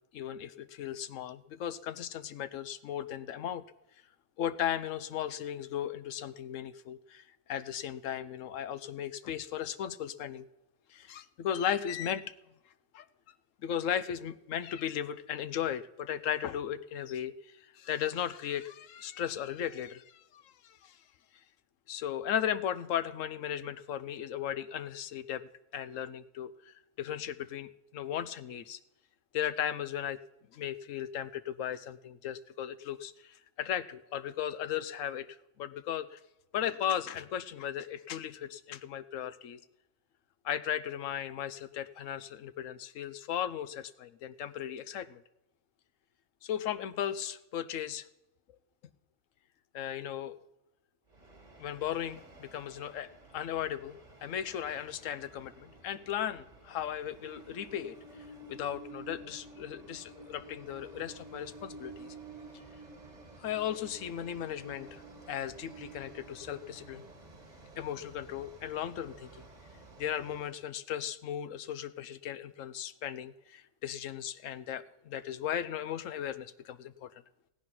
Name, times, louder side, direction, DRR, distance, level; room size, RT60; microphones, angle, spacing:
voice 1, 0.1-3.6 4.4-10.4 10.9-12.3 12.9-13.0 13.6-21.0 21.9-28.8 29.3-30.2 30.5-35.3 35.6-36.2 36.5-39.6 40.4-45.2 46.4-48.1 49.7-50.4 51.6-58.0 58.5-62.1 63.4-65.0 65.3-67.0 67.8-69.4 70.0-77.2, left 10 dB, 85° left, 13 dB, 1.1 m, -36 dB
Train, 51.1-70.6, right 2 dB, 35° right, 1.5 m, -51 dB
17.0 x 9.5 x 5.9 m, 0.93 s
omnidirectional pair, 1.3 m